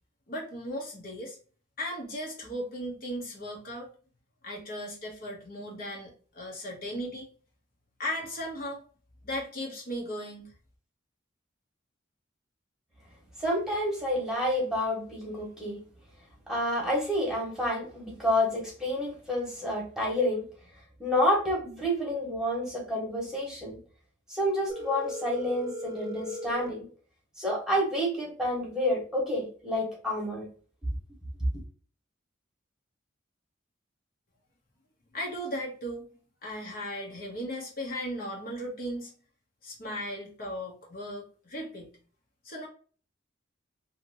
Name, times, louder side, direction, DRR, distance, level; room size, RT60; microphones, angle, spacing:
voice 1, 0.3-1.4 1.8-3.9 4.4-7.3 8.0-8.8 9.2-10.5 35.1-36.1 36.4-39.1 39.6-41.9 42.4-42.7, equal, 50° left, -1 dB, 0.9 m, -36 dB
voice 2, 13.4-15.8 16.5-20.4 21.0-23.8 24.3-26.9 27.4-30.5, left 1 dB, 5° right, -3 dB, 1.2 m, -29 dB
Telephone, 24.7-26.7, equal, 20° right, 0.4 m, -37 dB
2.8 x 2.8 x 2.7 m, 0.41 s
head